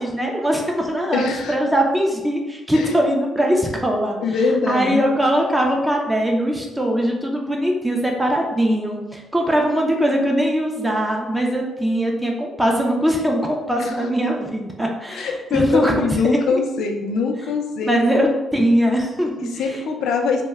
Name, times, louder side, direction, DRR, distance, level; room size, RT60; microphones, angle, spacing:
voice 1, 0.0-4.2 4.7-15.9 16.2-16.6 17.9-19.8, equal, 10° right, 0 dB, 0.4 m, -21 dB
voice 2, 1.1-1.6 2.7-3.0 4.2-5.1 13.9-14.0 15.1-18.0 19.5-20.4, left 4 dB, 80° left, 3 dB, 0.4 m, -23 dB
2.1 x 2.1 x 3.3 m, 1.1 s
cardioid pair, 90°, 0 cm